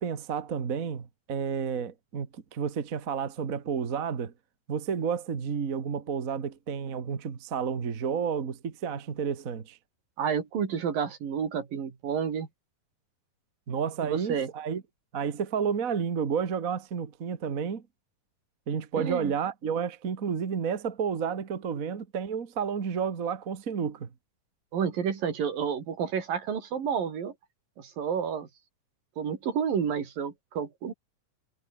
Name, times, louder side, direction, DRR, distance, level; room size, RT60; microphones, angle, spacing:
voice 1, 0.0-4.3 4.7-9.8 13.7-14.8 15.1-17.8 18.7-24.1, right 6 dB, 35° right, 1.4 m, -31 dB
voice 2, 10.2-12.5 14.0-14.5 19.0-19.3 24.7-27.3 27.8-28.5 29.2-30.9, right 7 dB, 75° right, 4.9 m, -30 dB
omnidirectional pair, 4.0 m